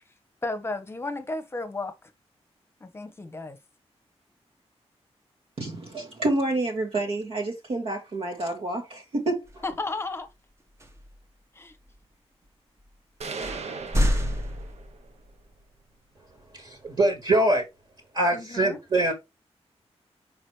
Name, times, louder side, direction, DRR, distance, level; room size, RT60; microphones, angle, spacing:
voice 1, 0.4-2.1 2.8-3.6 9.6-10.3 11.5-11.8 18.3-18.8, left 2 dB, 20° left, 1.0 m, -33 dB
voice 2, 5.6-9.6, right 2 dB, 60° right, 1.5 m, -29 dB
sound 1, 9.5-9.8 10.8-11.2 11.9-12.0 12.8-12.9 13.4-15.3, equal, 25° right, 1.2 m, -28 dB
sound 2, 13.2-15.2, right 4 dB, 80° right, 1.0 m, -37 dB
voice 3, 16.5-17.6 18.1-19.1, right 1 dB, 40° right, 1.8 m, -23 dB
6.0 x 5.0 x 3.2 m
wide cardioid pair, 165°, 11 cm